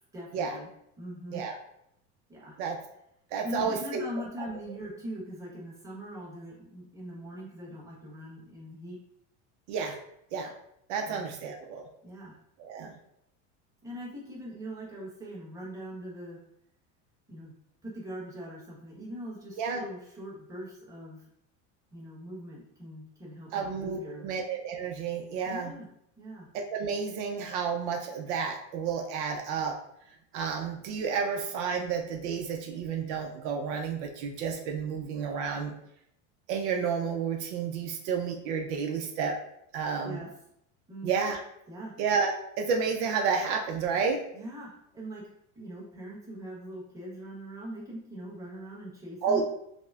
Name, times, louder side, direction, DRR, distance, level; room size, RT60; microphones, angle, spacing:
voice 1, 0.1-0.7 1.0-1.4 2.3-2.5 3.4-9.0 11.0-11.3 12.0-12.4 13.8-16.4 17.3-17.5 17.8-21.3 21.9-24.3 25.4-25.9 26.2-26.5 40.0-40.3 40.9-41.1 41.7-42.0 44.3-45.2 45.5-49.4, equal, 10° right, -6 dB, 1.1 m, -41 dB
voice 2, 3.3-4.0 9.7-10.0 10.3-10.5 10.9-11.8 12.6-13.0 19.6-19.8 23.5-25.7 26.5-29.8 30.3-35.7 36.5-39.4 39.7-40.2 41.0-41.4 42.0-44.2 49.2-49.4, right 6 dB, 70° right, 3 dB, 0.6 m, -31 dB
5.8 x 2.1 x 2.4 m, 0.77 s
supercardioid pair, 150°, 37 cm